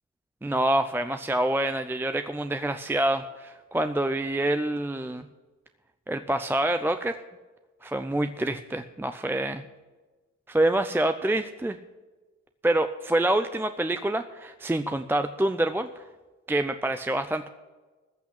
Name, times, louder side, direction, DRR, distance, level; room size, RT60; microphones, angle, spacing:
voice 1, 0.4-5.3 6.1-7.2 7.8-9.6 10.5-11.8 12.6-16.0 16.5-17.5, right 1 dB, 5° right, 9 dB, 0.5 m, -26 dB
14.5 x 6.0 x 9.9 m, 1.3 s
cardioid pair, 90°, 30 cm